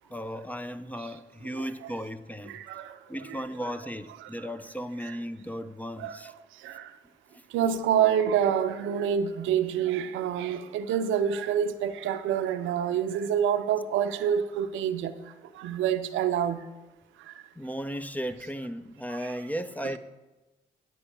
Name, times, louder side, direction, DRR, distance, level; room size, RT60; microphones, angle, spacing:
voice 1, 0.1-2.6 3.1-6.3 7.3-7.4 17.6-20.0, equal, 10° left, 12 dB, 0.5 m, -35 dB
voice 2, 1.6-1.9 2.5-2.9 3.3-3.4 4.2-4.3 5.0-5.1 6.0-6.2 6.6-6.9 7.5-15.1 15.6-16.6 19.2-19.3, right 8 dB, 80° right, 10 dB, 0.6 m, -27 dB
9.9 x 4.6 x 7.2 m, 1.1 s
supercardioid pair, 50°, 20 cm